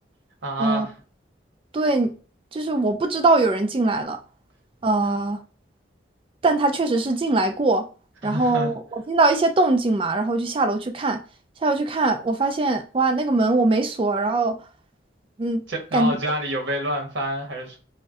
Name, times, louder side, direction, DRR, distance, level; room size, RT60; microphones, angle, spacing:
voice 1, 0.4-0.9 8.2-8.7 15.7-17.8, equal, 70° right, 0.9 m, -28 dB
voice 2, 1.7-2.1 2.5-4.2 4.8-5.4 6.4-7.9 8.2-11.2 11.6-14.6 15.4-15.6 15.9-16.1, right 2 dB, 30° right, 0.3 m, -21 dB
3.5 x 2.1 x 2.5 m
head